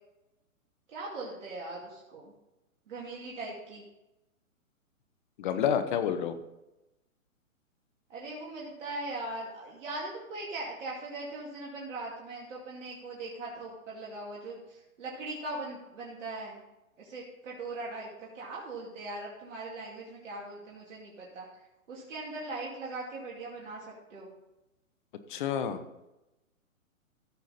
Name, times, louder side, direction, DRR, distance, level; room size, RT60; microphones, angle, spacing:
voice 1, 0.9-2.3 2.9-3.8 8.1-16.6 17.0-24.3, right 2 dB, 60° right, -4 dB, 2.6 m, -40 dB
voice 2, 5.4-6.4 25.3-25.8, left 8 dB, 35° left, 10 dB, 0.9 m, -29 dB
14.5 x 6.1 x 4.2 m, 0.97 s
hypercardioid pair, 140°, 42 cm